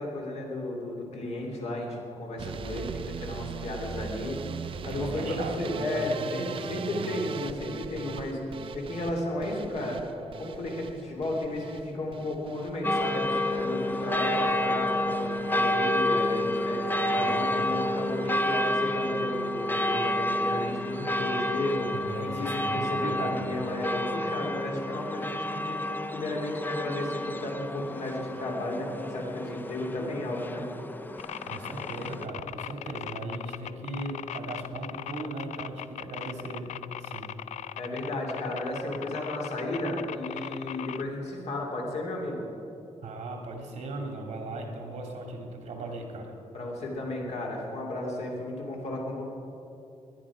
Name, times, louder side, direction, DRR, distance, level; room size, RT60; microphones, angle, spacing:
voice 1, 0.0-4.4 4.8-8.4 8.7-10.0 10.4-30.7 37.8-42.5 46.5-49.2, left 1 dB, 65° left, -1 dB, 2.9 m, -33 dB
sound 1, 2.4-14.5 14.8-15.4 15.7-16.3 16.6-16.9 17.2-17.3 17.5-17.6, right 7 dB, 50° right, 0.5 m, -40 dB
voice 2, 4.9-7.1 17.2-17.7 21.9-23.4 31.4-37.3 41.9-42.0 43.0-46.3, right 2 dB, 70° right, 2 dB, 2.3 m, -38 dB
sound 2, 12.8-32.3, left 1 dB, 15° left, 0.5 m, -30 dB
sound 3, 31.2-41.0, left 11 dB, 80° left, 0.4 m, -39 dB
20.0 x 10.5 x 4.9 m, 2.9 s
wide cardioid pair, 155°, 12 cm